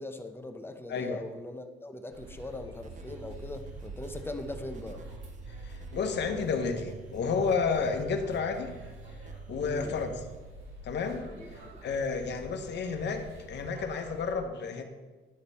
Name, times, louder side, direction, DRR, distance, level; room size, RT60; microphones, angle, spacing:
voice 1, 0.0-5.0 9.6-10.0 11.4-11.7, left 2 dB, 10° left, 6 dB, 0.8 m, -41 dB
voice 2, 0.9-1.2 5.5-8.7 9.5-10.1 10.8-11.3 11.8-14.8, left 5 dB, 60° left, 6 dB, 1.0 m, -31 dB
sound 1, 2.1-14.3, right 1 dB, 75° right, 2.8 m, -46 dB
sound 2, 2.8-10.4, right 6 dB, 40° right, 0.5 m, -50 dB
11.0 x 5.1 x 4.2 m, 1.3 s
cardioid pair, 90°, 20 cm